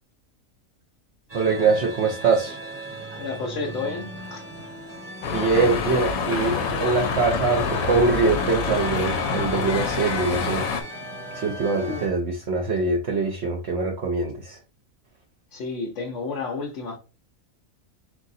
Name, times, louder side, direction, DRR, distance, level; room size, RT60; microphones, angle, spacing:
sound 1, 1.3-12.1, right 1 dB, 20° right, 1.0 m, -37 dB
voice 1, 1.3-2.6 5.3-6.6 6.8-10.7 11.3-14.6, right 4 dB, 60° right, 0.9 m, -23 dB
voice 2, 3.2-4.4 11.8-12.0 15.5-17.0, left 4 dB, 65° left, 1.0 m, -31 dB
sound 2, 5.2-10.8, left 5 dB, 85° left, 1.1 m, -26 dB
3.7 x 2.7 x 4.1 m
omnidirectional pair, 1.4 m